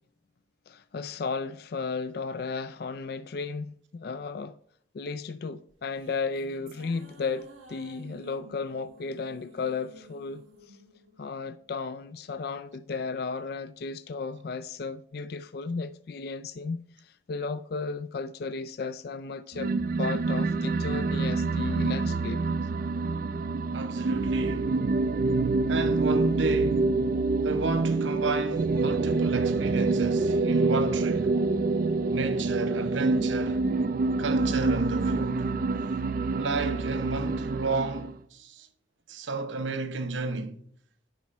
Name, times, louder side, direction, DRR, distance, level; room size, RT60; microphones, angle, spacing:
voice 1, 0.7-4.5 4.9-10.4 11.2-19.7 20.0-22.4, left 4 dB, 50° left, 0.3 m, -34 dB
sound 1, 5.7-12.3, right 1 dB, 90° right, 1.6 m, -53 dB
sound 2, 19.5-38.1, right 3 dB, 45° right, 0.3 m, -26 dB
voice 2, 23.7-24.7 25.7-27.0 27.4-31.4 32.1-33.6 34.2-35.5 36.3-38.7 39.1-40.6, right 3 dB, 75° right, 0.8 m, -32 dB
10.5 x 4.2 x 5.3 m
head